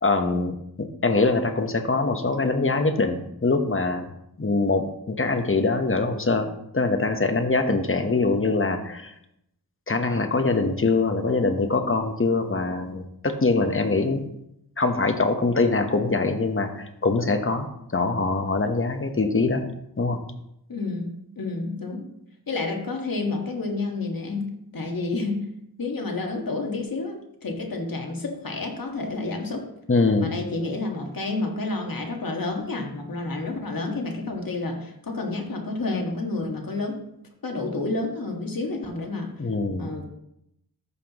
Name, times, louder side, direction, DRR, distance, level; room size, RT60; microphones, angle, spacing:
voice 1, 0.0-4.1 4.4-6.5 6.7-9.1 9.9-14.2 14.8-17.7 17.9-19.6 20.0-20.2 29.9-30.3 39.4-39.9, left 3 dB, 35° left, 5 dB, 1.0 m, -23 dB
voice 2, 20.7-22.1 22.5-25.4 25.8-27.2 27.4-29.6 30.2-37.0 37.4-39.3 39.8-40.0, left 3 dB, 60° left, 1 dB, 1.7 m, -29 dB
14.0 x 5.8 x 3.0 m, 0.79 s
wide cardioid pair, 70°, 38 cm